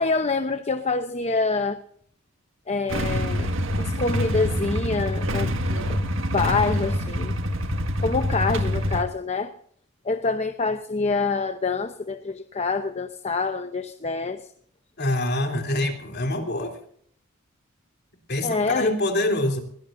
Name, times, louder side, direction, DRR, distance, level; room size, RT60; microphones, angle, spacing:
voice 1, 0.0-1.8 2.7-3.5 3.8-6.0 6.3-7.4 8.0-9.5 10.0-14.4 18.4-18.9, left 3 dB, 30° left, 8 dB, 0.8 m, -26 dB
Motorcycle / Engine starting / Idling, 2.9-9.0, equal, 70° right, 1.7 m, -26 dB
voice 2, 15.0-16.8 18.3-19.6, left 1 dB, 55° left, 3 dB, 3.2 m, -25 dB
22.0 x 17.0 x 2.6 m, 0.63 s
head